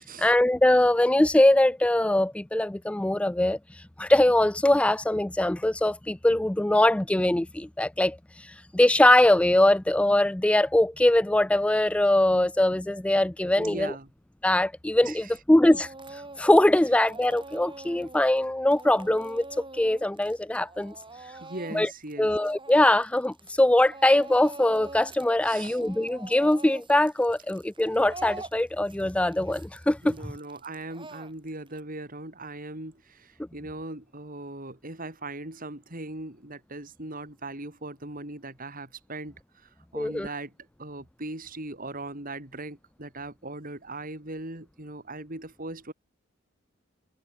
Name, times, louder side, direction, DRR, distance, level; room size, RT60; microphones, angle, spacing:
voice 1, 0.2-3.6 4.0-13.9 14.4-20.9 21.7-21.9 22.2-30.1 39.9-40.3, left 1 dB, 5° left, 0.4 m, -22 dB
voice 2, 13.6-14.1 15.0-15.3 21.4-22.3 25.4-25.8 30.0-40.5 40.8-45.9, right 2 dB, 45° right, 6.3 m, -39 dB
Speech / Crying sobbing, 15.6-16.7 17.0-23.6 23.9-25.3 25.6-31.8, right 3 dB, 25° right, 7.9 m, -45 dB
head